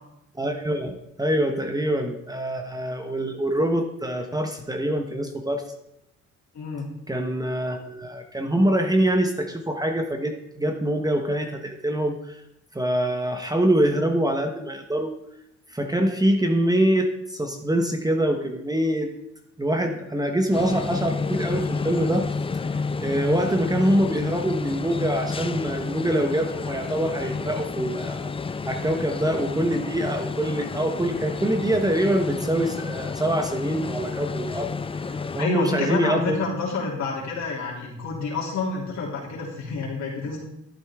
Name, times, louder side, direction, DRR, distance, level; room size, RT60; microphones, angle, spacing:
voice 1, 0.3-5.6 7.1-12.4 12.7-15.1 15.7-19.1 19.6-22.3 22.7-28.3 28.7-34.7 35.0-36.4, right 1 dB, 10° right, 4 dB, 1.1 m, -24 dB
voice 2, 6.5-6.9 35.4-40.4, left 4 dB, 65° left, -5 dB, 2.9 m, -28 dB
sound 1, 20.5-35.4, left 4 dB, 20° left, 0.4 m, -30 dB
11.5 x 9.0 x 3.6 m, 0.83 s
cardioid pair, 90°, 30 cm